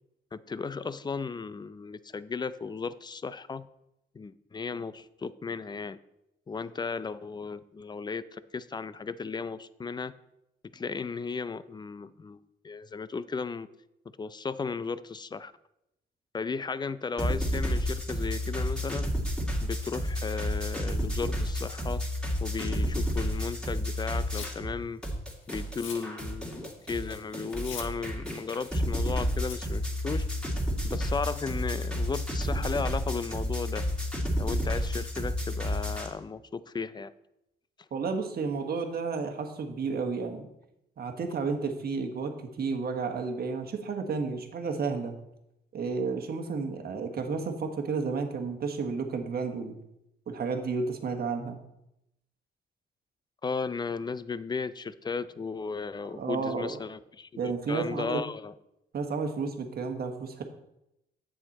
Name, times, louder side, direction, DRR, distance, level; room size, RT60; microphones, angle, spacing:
voice 1, 0.3-3.7 4.1-6.0 6.5-10.1 10.7-13.7 14.2-15.5 16.3-19.2 19.6-22.0 22.4-25.0 25.5-30.3 30.8-33.9 34.4-37.1 53.4-58.5, left 4 dB, 20° left, 15 dB, 0.4 m, -35 dB
sound 1, 17.2-24.8 25.0-36.1, equal, 5° left, 2.4 m, -31 dB
Tearing, 23.0-24.6 25.0-31.5, left 6 dB, 80° left, 1.3 m, -47 dB
voice 2, 37.9-40.5 41.0-45.1 45.7-49.7 50.3-51.6 56.1-56.8 57.4-58.2 58.9-60.4, right 4 dB, 50° right, 5 dB, 1.3 m, -32 dB
7.9 x 7.4 x 4.2 m, 0.85 s
cardioid pair, 90°, 20 cm